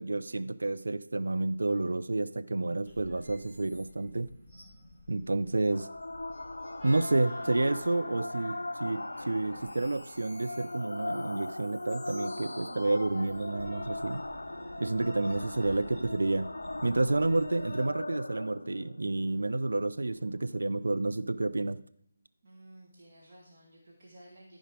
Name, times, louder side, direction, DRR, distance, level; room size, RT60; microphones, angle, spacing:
voice 1, 0.0-4.3 5.1-5.9 6.8-14.2 14.8-16.5 16.8-21.8, right 2 dB, 60° right, 12 dB, 0.4 m, -30 dB
sound 1, 2.8-17.8, equal, 10° right, 3.0 m, -51 dB
sound 2, 5.7-20.7, left 2 dB, 65° left, 0.4 m, -39 dB
voice 2, 22.4-24.6, right 1 dB, 35° right, -5 dB, 2.1 m, -54 dB
14.0 x 5.1 x 5.0 m, 0.68 s
figure-of-eight pair, 155°, 0 cm